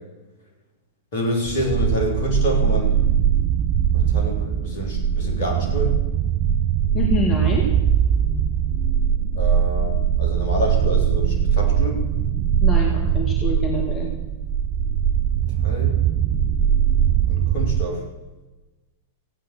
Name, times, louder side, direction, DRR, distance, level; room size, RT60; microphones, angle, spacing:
voice 1, 1.1-3.0 3.9-6.0 9.3-12.1 15.6-16.0 17.3-18.0, equal, 55° left, 0 dB, 4.0 m, -27 dB
sound 1, 1.5-17.9, right 9 dB, 40° right, 0.5 m, -21 dB
voice 2, 6.9-7.7 12.6-14.1, left 2 dB, 30° left, 0 dB, 2.4 m, -25 dB
15.5 x 9.1 x 6.3 m, 1.1 s
figure-of-eight pair, 95°, 0 cm